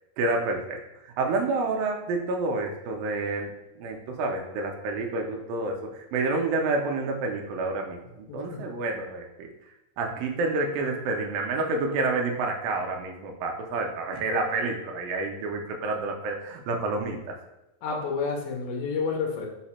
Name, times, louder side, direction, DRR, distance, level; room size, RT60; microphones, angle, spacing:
voice 1, 0.2-3.5 3.8-9.5 10.0-17.4, right 3 dB, 80° right, 2 dB, 2.1 m, -29 dB
voice 2, 8.3-8.6 17.8-19.5, left 5 dB, 90° left, 0 dB, 1.6 m, -30 dB
5.7 x 2.1 x 4.1 m, 0.95 s
omnidirectional pair, 4.2 m